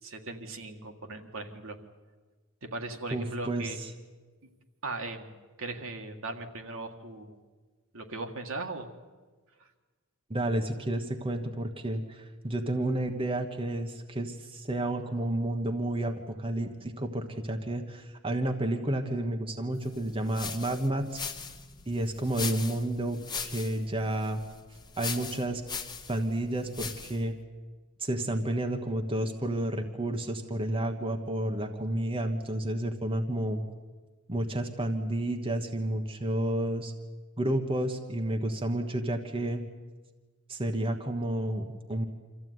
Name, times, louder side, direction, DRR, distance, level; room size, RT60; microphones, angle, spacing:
voice 1, 0.0-1.8 2.6-3.8 4.8-5.3 5.6-7.4 7.9-8.9 9.6-9.7, right 2 dB, 65° right, 4 dB, 1.9 m, -38 dB
voice 2, 3.1-3.9 10.3-21.2 21.9-24.4 25.0-25.6 26.1-27.3 28.0-33.6 34.3-36.9 37.4-39.6 40.5-42.1, right 1 dB, 25° right, 4 dB, 1.3 m, -31 dB
sound 1, 19.9-27.3, left 5 dB, 20° left, 1.3 m, -40 dB
25.5 x 14.5 x 9.5 m, 1.4 s
head